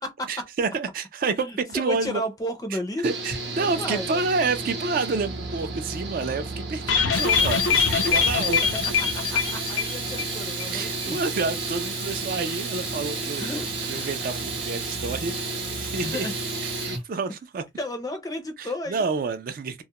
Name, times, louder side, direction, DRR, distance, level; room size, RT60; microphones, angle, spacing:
voice 1, 0.3-2.2 2.7-2.8 3.0-8.6 10.7-13.5 13.9-15.4 15.7-16.3 16.6-17.6 18.6-19.8, right 4 dB, 45° right, 0.3 m, -29 dB
voice 2, 1.4-3.0 3.6-4.2 9.1-11.2 13.3-14.1 16.0-16.3 17.8-19.0, left 1 dB, 20° left, 0.4 m, -33 dB
Engine / Mechanical fan, 3.0-17.0, right 2 dB, 65° right, 0.7 m, -33 dB
sound 1, 6.9-10.3 10.6-10.7 11.0-11.1, left 6 dB, 80° left, 0.4 m, -23 dB
Domestic sounds home sounds, 7.1-17.0, right 5 dB, 25° right, 0.7 m, -36 dB
2.3 x 2.0 x 2.8 m
head